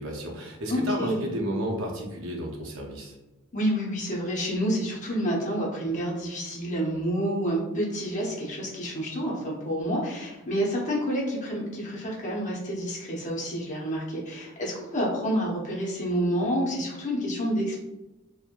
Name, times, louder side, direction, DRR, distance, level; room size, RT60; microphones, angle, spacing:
voice 1, 0.0-3.1, right 1 dB, 65° right, 0 dB, 0.6 m, -32 dB
voice 2, 0.7-1.3 3.5-17.8, equal, 35° left, -3 dB, 0.7 m, -28 dB
3.0 x 2.1 x 2.4 m, 1.0 s
head